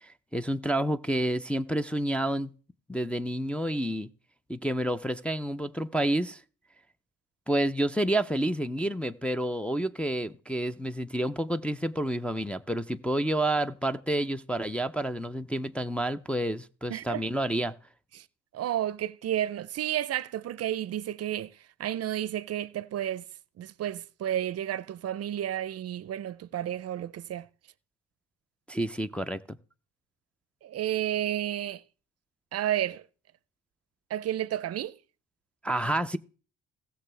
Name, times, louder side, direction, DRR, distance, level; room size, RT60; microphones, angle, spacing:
voice 1, 0.0-2.5 2.9-4.1 4.5-6.4 7.5-17.7 28.7-29.4 35.6-36.2, right 1 dB, 5° left, 0.4 m, -29 dB
voice 2, 16.9-17.3 18.1-18.3 18.5-21.5 21.8-23.2 23.6-27.5 30.6-31.8 32.5-33.0 34.1-35.0, right 11 dB, 55° right, 0.5 m, -31 dB
17.0 x 6.8 x 3.3 m
cardioid pair, 90°, 30 cm